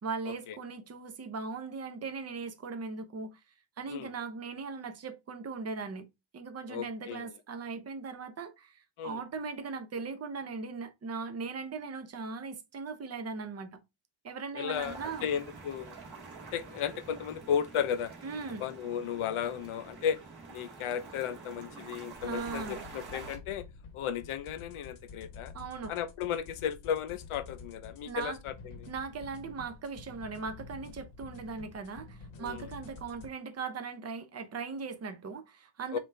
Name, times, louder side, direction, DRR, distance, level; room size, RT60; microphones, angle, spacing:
voice 1, 0.0-3.4 3.8-6.1 6.3-13.8 14.2-15.3 18.2-18.7 22.2-22.8 25.5-25.9 28.0-28.4 28.9-36.0, right 4 dB, 30° right, 0.7 m, -39 dB
voice 2, 6.7-7.3 9.0-9.2 14.5-16.0 16.5-18.1 18.6-20.2 20.5-23.7 23.9-25.5 25.9-28.8 32.4-32.7 35.9-36.0, left 8 dB, 85° left, 0.7 m, -34 dB
sound 1, 14.7-23.4, right 4 dB, 50° right, 1.8 m, -47 dB
sound 2, 22.1-33.3, left 4 dB, 65° left, 1.1 m, -49 dB
5.3 x 2.7 x 3.2 m
wide cardioid pair, 175°, 49 cm